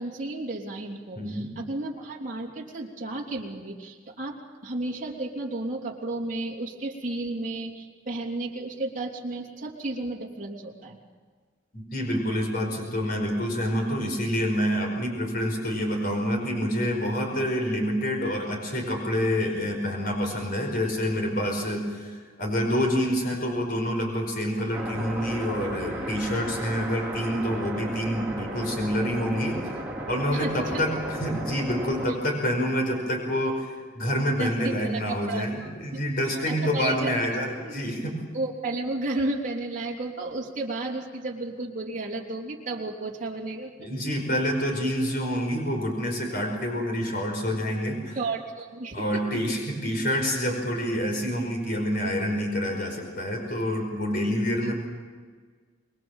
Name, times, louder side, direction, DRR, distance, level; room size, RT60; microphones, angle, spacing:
voice 1, 0.0-11.0 30.3-30.8 34.3-36.0 36.3-37.1 37.6-37.8 38.3-43.9 48.1-49.3 54.6-54.7, right 2 dB, 40° right, -2 dB, 3.3 m, -33 dB
voice 2, 1.2-1.5 11.7-29.7 30.1-38.2 43.8-48.2 48.9-54.7, equal, 50° left, 2 dB, 5.1 m, -27 dB
sound 1, 24.7-32.1, right 1 dB, 10° right, 3.1 m, -35 dB
25.5 x 21.5 x 7.3 m, 1.5 s
head